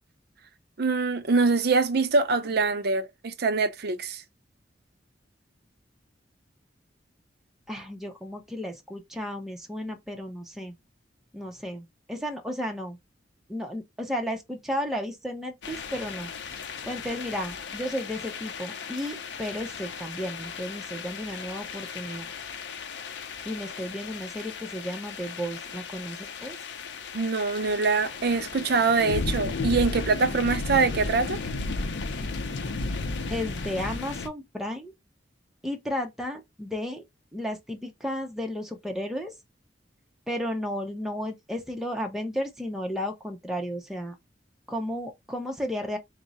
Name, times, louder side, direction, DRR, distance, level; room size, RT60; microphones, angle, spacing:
voice 1, 0.8-4.2 27.1-31.4, right 4 dB, 60° right, 0.6 m, -24 dB
voice 2, 7.7-10.7 11.3-13.0 13.5-16.3 16.9-22.3 23.5-26.6 33.3-34.9 35.6-37.0 37.3-39.3 40.3-44.2 44.7-46.0, equal, ahead, 0.6 m, -33 dB
sound 1, 15.6-34.3, left 3 dB, 70° left, 0.5 m, -35 dB
3.6 x 2.0 x 4.0 m
head